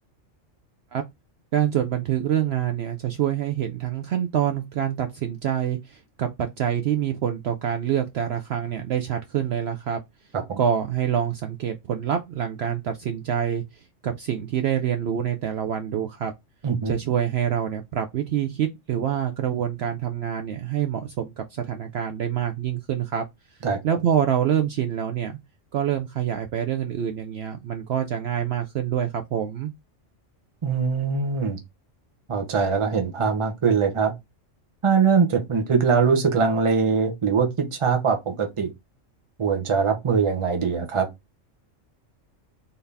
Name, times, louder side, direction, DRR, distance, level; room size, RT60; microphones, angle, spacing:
voice 1, 1.5-10.0 10.6-16.3 16.9-23.2 23.8-25.4 25.7-29.7, right 9 dB, 65° right, 0.7 m, -26 dB
voice 2, 16.6-16.9 23.6-23.8 30.6-31.6 32.3-34.1 34.8-38.7 39.4-41.1, right 5 dB, 30° right, 0.7 m, -22 dB
3.9 x 2.7 x 3.3 m
omnidirectional pair, 1.3 m